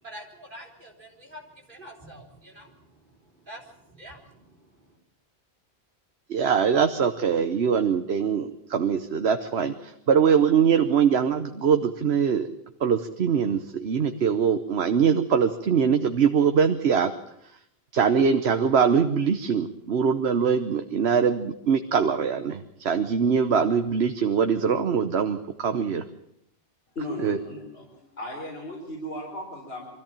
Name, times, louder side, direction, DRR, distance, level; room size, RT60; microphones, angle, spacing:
voice 1, 0.0-5.0, equal, 50° right, -1 dB, 4.5 m, -46 dB
voice 2, 6.3-12.5 12.8-17.1 17.9-26.0 27.2-27.4, right 6 dB, 80° right, 7 dB, 1.2 m, -22 dB
voice 3, 26.9-27.8 28.2-29.9, left 1 dB, 70° left, -3 dB, 4.5 m, -36 dB
24.0 x 14.0 x 8.9 m, 0.78 s
omnidirectional pair, 1.1 m